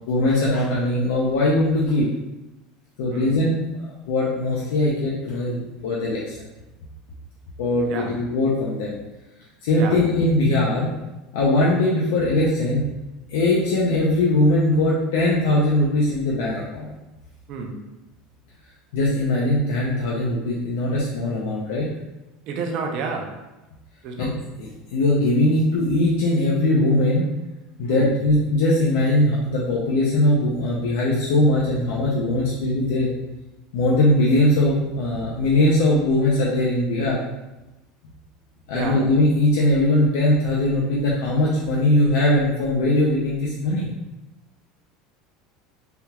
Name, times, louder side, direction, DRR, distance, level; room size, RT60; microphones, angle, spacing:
voice 1, 0.1-2.1 3.0-3.6 4.1-6.4 7.6-9.0 9.6-10.9 11.3-12.8 13.3-16.9 18.9-21.9 24.2-24.3 24.6-27.3 27.8-33.1 33.7-37.2 38.7-43.9, left 1 dB, 80° left, -5 dB, 0.5 m, -20 dB
voice 2, 22.5-23.4 24.0-24.3 27.9-28.1 38.7-39.0, right 4 dB, 45° right, 3 dB, 0.4 m, -30 dB
3.4 x 2.3 x 2.9 m, 1.0 s
cardioid pair, 170°, 0 cm